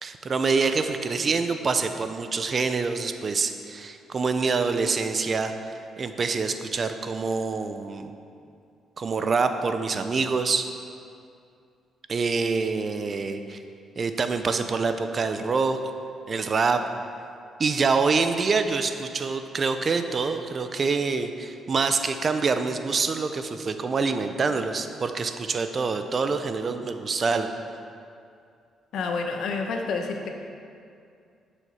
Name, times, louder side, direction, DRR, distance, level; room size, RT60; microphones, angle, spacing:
voice 1, 0.0-8.1 9.0-10.7 12.1-13.6 14.0-15.8 16.3-16.9 17.6-27.5, right 4 dB, 40° right, 8 dB, 0.7 m, -26 dB
voice 2, 28.9-30.3, left 4 dB, 75° left, 3 dB, 1.2 m, -29 dB
10.5 x 6.5 x 5.7 m, 2.4 s
cardioid pair, 90°, 0 cm